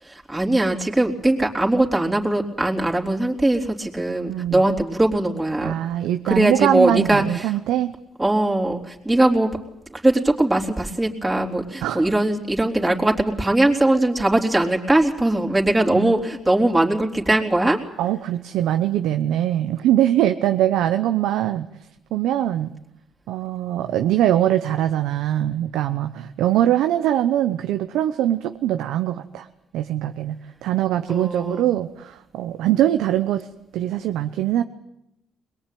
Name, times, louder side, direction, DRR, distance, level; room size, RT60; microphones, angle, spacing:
voice 1, 0.0-5.7 6.2-7.5 8.2-9.5 9.9-17.8 31.1-31.7, right 1 dB, 15° right, -1 dB, 3.6 m, -20 dB
voice 2, 4.3-4.6 5.6-7.9 11.8-12.1 15.9-16.2 18.0-21.7 22.1-22.7 23.3-29.5 29.7-33.5 33.7-34.6, right 12 dB, 90° right, 8 dB, 0.9 m, -22 dB
22.0 x 21.5 x 9.4 m, 0.83 s
cardioid pair, 90°, 0 cm